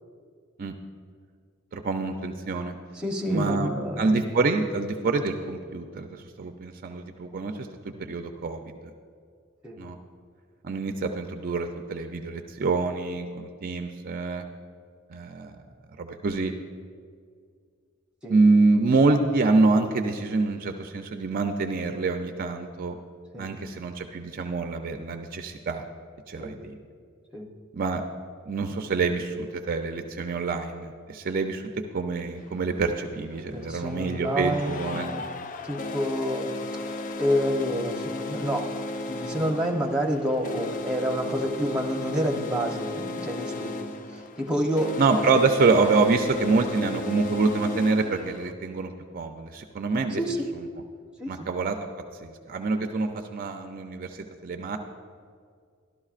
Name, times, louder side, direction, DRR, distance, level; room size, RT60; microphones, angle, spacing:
voice 1, 1.7-2.7 3.3-3.7 4.0-8.7 9.8-10.0 10.6-14.5 15.1-15.6 16.0-16.5 18.3-23.0 23.4-25.9 26.3-26.5 27.7-28.0 28.5-31.6 31.9-35.2 45.0-50.2 51.3-51.7 52.2-54.8, right 3 dB, 45° right, 5 dB, 0.4 m, -26 dB
voice 2, 2.9-4.1 9.6-9.8 18.2-18.4 23.3-23.5 26.4-26.6 27.3-27.4 33.5-35.2 35.6-38.7 39.1-45.4 50.2-50.5 51.2-51.5, equal, 5° right, 0 dB, 0.8 m, -29 dB
sound 1, 32.4-32.5 33.5-48.5, left 2 dB, 40° left, 0.4 m, -35 dB
13.0 x 12.0 x 2.4 m, 2.1 s
head